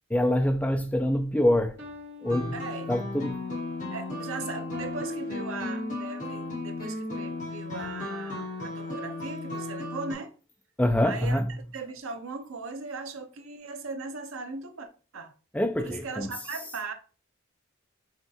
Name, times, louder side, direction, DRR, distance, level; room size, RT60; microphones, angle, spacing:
voice 1, 0.1-1.8 2.2-2.5 2.9-3.4 10.8-11.4 15.5-16.3, left 1 dB, 5° left, 0.4 m, -25 dB
sound 1, 1.8-3.4 4.7-6.4 7.8-9.4, right 1 dB, 55° right, 1.5 m, -48 dB
sound 2, 2.2-10.1, left 2 dB, 40° left, 1.5 m, -35 dB
voice 2, 2.5-2.9 3.9-10.3 11.0-11.4 11.7-15.3 15.8-16.9, right 4 dB, 85° right, 0.6 m, -38 dB
5.8 x 2.5 x 2.7 m
head